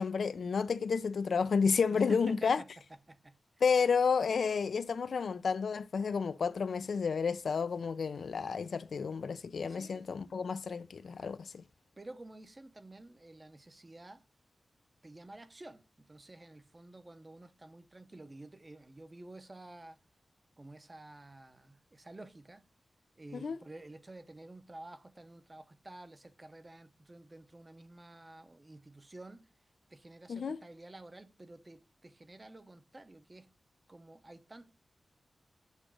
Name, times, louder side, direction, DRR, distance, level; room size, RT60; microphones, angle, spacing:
voice 1, 0.0-2.6 3.6-11.6 23.3-23.6 30.3-30.6, left 5 dB, 75° left, 0.4 m, -31 dB
voice 2, 1.9-2.7 3.1-3.4 9.7-10.1 12.0-14.2 15.0-20.0 20.6-22.6 23.2-29.5 29.9-33.5 33.9-34.7, right 2 dB, 25° right, 0.6 m, -51 dB
8.2 x 3.0 x 6.1 m
wide cardioid pair, 150°, 0 cm